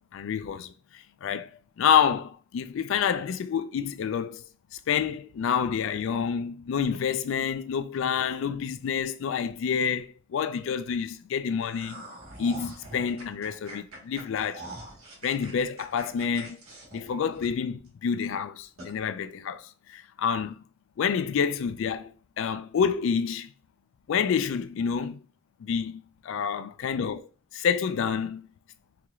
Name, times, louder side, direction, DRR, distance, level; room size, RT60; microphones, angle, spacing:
voice 1, 0.1-1.5 1.8-12.1 12.4-14.6 15.2-16.6 16.9-20.6 21.0-23.5 24.1-25.2 25.6-27.3 27.5-28.5, left 7 dB, 60° left, 0.3 m, -28 dB
sound 1, 11.6-17.9 18.2-18.3 18.8-18.9, right 1 dB, 80° right, 1.5 m, -44 dB
4.5 x 2.9 x 2.4 m
head